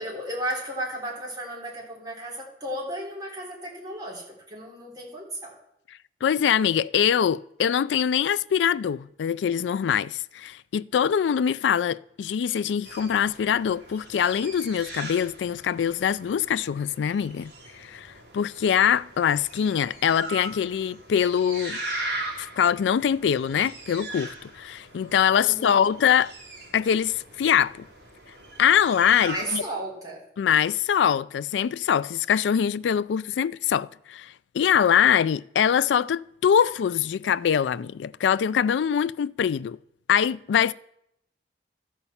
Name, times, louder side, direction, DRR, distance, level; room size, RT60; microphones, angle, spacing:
voice 1, 0.0-5.5 25.4-25.9 29.2-30.2, right 1 dB, 20° right, 3.6 m, -34 dB
voice 2, 6.2-21.8 22.4-26.3 26.7-27.9 28.6-29.6 30.4-39.8 40.1-40.7, left 8 dB, 85° left, 0.3 m, -23 dB
sound 1, 12.8-29.4, right 2 dB, 65° right, 3.2 m, -40 dB
13.0 x 5.6 x 7.1 m
head